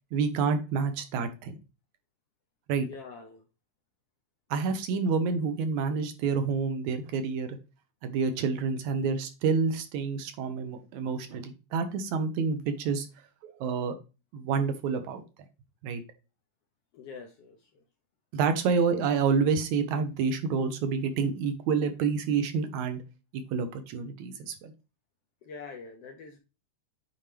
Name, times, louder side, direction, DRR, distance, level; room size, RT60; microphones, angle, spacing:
voice 1, 0.1-1.6 2.7-2.9 4.5-7.6 8.0-13.1 13.4-13.9 14.3-15.2 15.8-16.0 18.3-23.0 23.3-24.7, right 5 dB, 75° right, 8 dB, 2.2 m, -28 dB
voice 2, 2.8-3.4 16.9-17.6 25.4-26.4, left 5 dB, 70° left, 3 dB, 1.6 m, -44 dB
9.0 x 4.4 x 3.3 m, 0.31 s
omnidirectional pair, 3.5 m